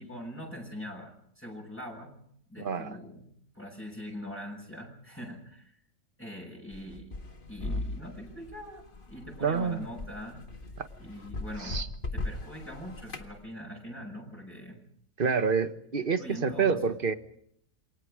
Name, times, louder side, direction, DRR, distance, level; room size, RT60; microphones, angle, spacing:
voice 1, 0.0-2.2 2.5-3.3 3.5-5.7 6.2-7.1 7.5-10.5 11.0-11.8 12.1-14.8 16.2-16.9, equal, 10° left, -2 dB, 6.5 m, -42 dB
voice 2, 2.6-3.0 9.4-9.9 10.8-10.9 11.6-11.9 15.2-17.1, right 5 dB, 40° right, 11 dB, 1.6 m, -28 dB
sound 1, 6.7-13.3, left 2 dB, 40° left, 1.9 m, -38 dB
28.5 x 23.0 x 5.0 m, 0.67 s
omnidirectional pair, 1.4 m